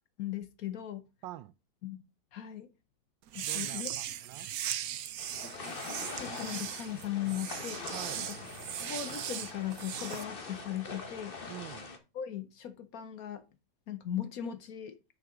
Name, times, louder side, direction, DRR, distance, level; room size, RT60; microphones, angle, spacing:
voice 1, 0.2-1.0 1.8-2.0 2.3-2.7 3.3-4.1 6.1-7.8 8.2-8.3 8.9-11.4 12.1-13.4 13.9-15.0, left 11 dB, 60° left, 1.1 m, -38 dB
voice 2, 1.2-1.5 3.4-4.5 7.9-8.3 11.5-11.9, right 14 dB, 85° right, 1.3 m, -45 dB
sound 1, 3.3-10.2, right 11 dB, 65° right, 0.9 m, -38 dB
sound 2, 5.2-12.0, left 4 dB, 35° left, 1.2 m, -43 dB
6.5 x 5.9 x 4.9 m
omnidirectional pair, 2.0 m